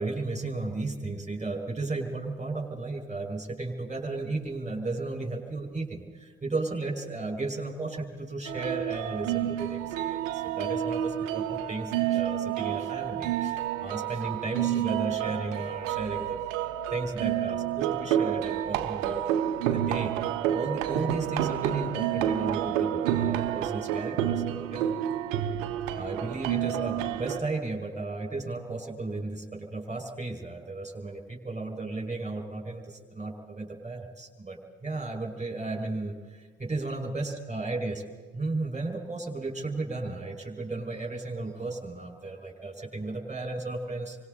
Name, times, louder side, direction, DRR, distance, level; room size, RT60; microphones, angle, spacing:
voice 1, 0.0-16.4 16.9-19.2 19.7-20.1 20.5-24.9 26.0-38.0 38.3-44.2, right 3 dB, 15° right, 2 dB, 5.7 m, -34 dB
sound 1, 8.5-27.4, right 11 dB, 80° right, 1.1 m, -29 dB
29.0 x 25.0 x 4.1 m, 1.4 s
figure-of-eight pair, 45°, 39 cm